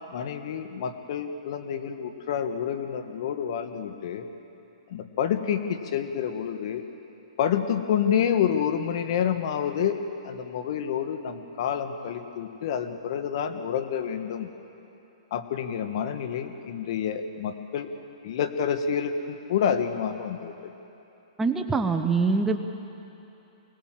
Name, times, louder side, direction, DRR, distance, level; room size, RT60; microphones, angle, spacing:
voice 1, 0.1-4.3 4.9-6.8 7.4-10.0 10.2-14.5 15.3-17.9 18.2-20.5, left 8 dB, 55° left, 8 dB, 1.6 m, -28 dB
voice 2, 21.4-22.6, right 4 dB, 10° right, 5 dB, 0.9 m, -24 dB
24.5 x 18.5 x 7.6 m, 3.0 s
hypercardioid pair, 140°, 3 cm